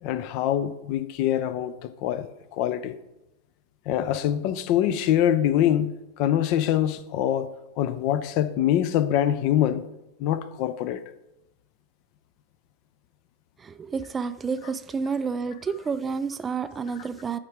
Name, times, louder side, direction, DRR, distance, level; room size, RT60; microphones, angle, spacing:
voice 1, 0.0-2.9 3.9-7.5 7.8-9.8 10.2-11.0, left 11 dB, 45° left, 0.4 m, -24 dB
voice 2, 13.6-17.4, right 5 dB, 20° right, 0.3 m, -30 dB
10.0 x 3.7 x 4.7 m
figure-of-eight pair, 90°, 0 cm